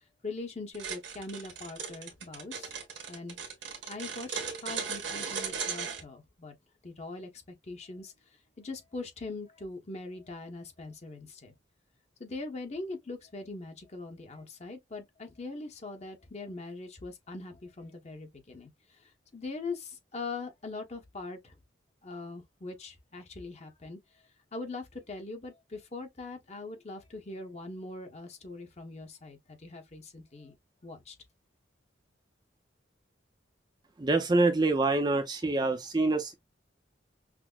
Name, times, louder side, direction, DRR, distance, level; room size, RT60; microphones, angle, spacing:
voice 1, 0.2-2.7 3.1-3.4 3.9-6.5 6.8-8.1 8.6-11.5 12.2-21.5 22.0-24.0 24.5-30.5 30.8-31.2, left 3 dB, 35° left, 0.8 m, -42 dB
sound 1, 0.7-6.0, right 6 dB, 70° right, 1.2 m, -37 dB
voice 2, 34.0-36.3, right 2 dB, 20° right, 0.4 m, -26 dB
5.9 x 2.0 x 2.2 m
head